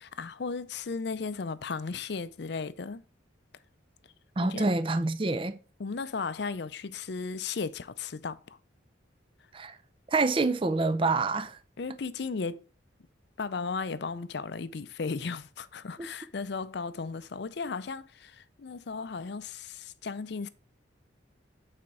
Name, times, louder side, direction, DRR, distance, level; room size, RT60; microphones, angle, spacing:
voice 1, 0.0-3.0 4.4-4.7 5.8-8.6 11.8-12.6 13.4-20.5, left 4 dB, 60° left, 0.5 m, -35 dB
voice 2, 4.4-5.6 9.5-9.8 10.1-11.6, right 3 dB, 25° right, 0.4 m, -27 dB
8.6 x 4.2 x 4.8 m
head